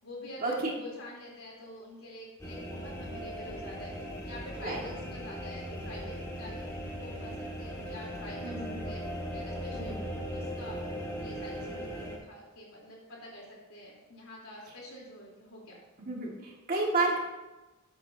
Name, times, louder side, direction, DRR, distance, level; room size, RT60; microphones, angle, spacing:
voice 1, 0.0-10.8 11.2-15.8, left 1 dB, 75° left, -3 dB, 3.7 m, -47 dB
sound 1, 2.4-12.2, equal, 15° left, 1.8 m, -38 dB
voice 2, 8.4-8.8 9.7-10.0 16.0-17.2, right 3 dB, 40° right, -2 dB, 2.1 m, -31 dB
13.5 x 8.3 x 2.8 m, 1.1 s
head